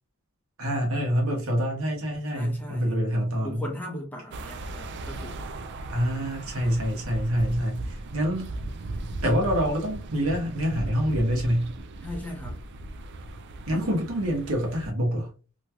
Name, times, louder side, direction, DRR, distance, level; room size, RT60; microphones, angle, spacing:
voice 1, 0.6-3.6 5.9-8.5 9.2-11.7 13.7-15.3, equal, 85° right, 1.2 m, -26 dB
voice 2, 2.3-3.0 3.4-5.4 12.0-12.6 13.7-14.0, left 1 dB, 10° left, 0.9 m, -38 dB
sound 1, 4.3-14.9, right 2 dB, 55° right, 0.3 m, -37 dB
3.0 x 2.9 x 2.3 m
head